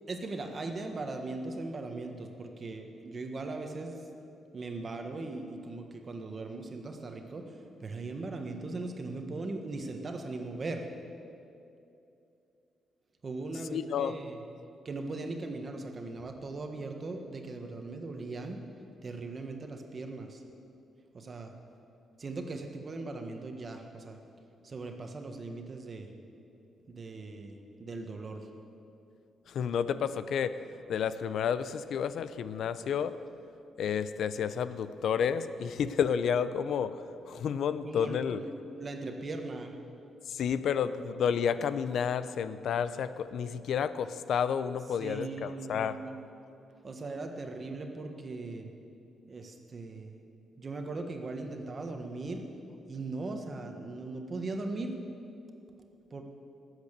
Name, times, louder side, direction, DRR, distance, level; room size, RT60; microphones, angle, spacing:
voice 1, 0.1-4.0 4.5-10.9 13.2-14.4 14.8-18.6 19.0-20.4 21.1-21.5 22.2-24.2 24.6-26.1 26.9-28.5 37.8-38.5 38.7-39.8 45.0-46.2 46.8-48.7 49.3-50.2 50.6-52.5 52.9-55.0 56.1-56.2, right 3 dB, 30° right, 4 dB, 1.3 m, -39 dB
voice 2, 13.7-14.2 29.5-30.6 30.9-33.2 33.8-38.4 40.3-46.0, left 7 dB, 65° left, 13 dB, 0.5 m, -31 dB
19.0 x 8.1 x 6.7 m, 2.7 s
cardioid pair, 145°, 0 cm